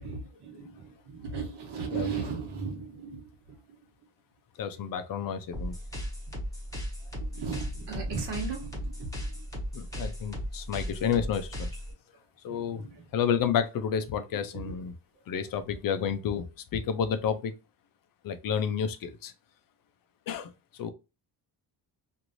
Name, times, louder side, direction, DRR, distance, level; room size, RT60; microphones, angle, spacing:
voice 1, 0.0-4.1 7.0-9.5 10.0-10.2 11.9-13.1 14.4-14.8 15.1-15.2, right 5 dB, 60° right, 1.3 m, -38 dB
voice 2, 4.6-5.7 9.7-11.7 12.4-12.8 13.1-14.9 15.3-17.5 18.2-19.3 20.3-20.9, left 7 dB, 50° left, 0.5 m, -30 dB
sound 1, 5.5-11.9, equal, 5° left, 0.8 m, -36 dB
3.1 x 2.6 x 2.5 m
cardioid pair, 180°, 45 cm